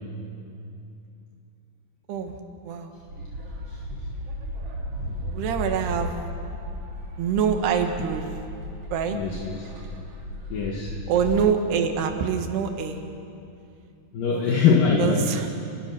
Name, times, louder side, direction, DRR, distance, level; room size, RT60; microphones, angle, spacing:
sound 1, 3.1-11.3, equal, 40° right, 2.9 m, -35 dB
voice 1, 5.3-6.1 7.2-8.3 8.9-9.2 11.1-13.0 14.3-14.6 15.0-15.5, right 7 dB, 85° right, 5 dB, 3.6 m, -25 dB
voice 2, 9.1-9.6 10.5-10.9 14.1-15.4, left 5 dB, 65° left, -1 dB, 3.1 m, -22 dB
28.5 x 21.0 x 6.1 m, 2.6 s
omnidirectional pair, 4.6 m